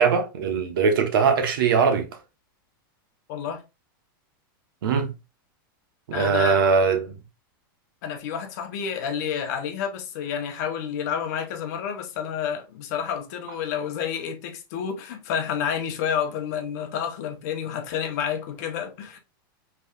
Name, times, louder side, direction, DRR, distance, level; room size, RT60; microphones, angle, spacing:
voice 1, 0.0-2.1 4.8-5.1 6.1-7.1, right 5 dB, 75° right, 1.1 m, -21 dB
voice 2, 3.3-3.6 6.1-6.6 8.0-19.2, left 8 dB, 50° left, 0.9 m, -29 dB
5.2 x 3.3 x 2.4 m
supercardioid pair, 170°, 12 cm